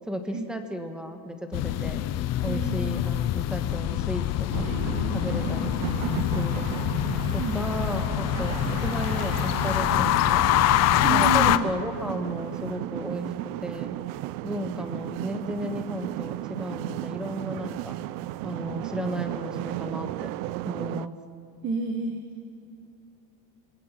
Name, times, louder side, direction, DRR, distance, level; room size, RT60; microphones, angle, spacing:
voice 1, 0.1-2.0 2.4-4.7 5.1-5.8 6.3-6.9 7.3-10.5 11.1-14.0 14.4-17.9 18.4-20.3 20.6-21.2, equal, ahead, 6 dB, 1.5 m, -34 dB
sound 1, 1.5-11.6, left 13 dB, 35° left, 0.7 m, -25 dB
voice 2, 2.4-3.0 7.4-7.6 11.0-11.7 21.6-22.2, right 4 dB, 25° right, 5 dB, 1.4 m, -30 dB
sound 2, 4.5-21.1, right 16 dB, 65° right, 0.7 m, -34 dB
27.0 x 20.5 x 6.0 m, 2.8 s
cardioid pair, 155°, 46 cm